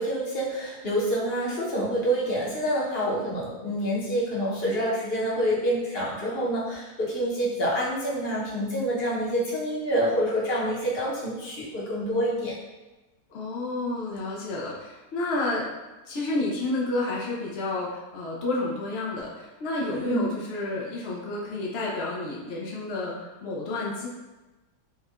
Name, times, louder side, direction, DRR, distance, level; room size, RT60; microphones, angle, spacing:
voice 1, 0.0-12.5 19.9-20.4, equal, 45° left, -6 dB, 0.9 m, -27 dB
voice 2, 13.3-15.7 16.1-24.1, left 2 dB, 85° left, -3 dB, 0.5 m, -30 dB
4.4 x 2.2 x 2.4 m, 1.1 s
omnidirectional pair, 1.7 m